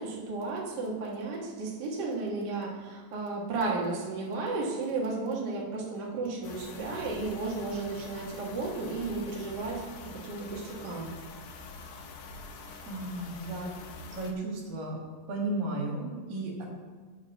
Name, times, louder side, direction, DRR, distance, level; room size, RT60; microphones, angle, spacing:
voice 1, 0.0-11.1, right 3 dB, 45° right, -3 dB, 1.5 m, -33 dB
sound 1, 6.4-14.3, left 3 dB, 70° left, 2.1 m, -45 dB
voice 2, 12.8-13.7 14.1-15.0 15.3-16.7, right 2 dB, 80° right, -1 dB, 3.3 m, -34 dB
7.3 x 5.4 x 7.1 m, 1.5 s
omnidirectional pair, 4.0 m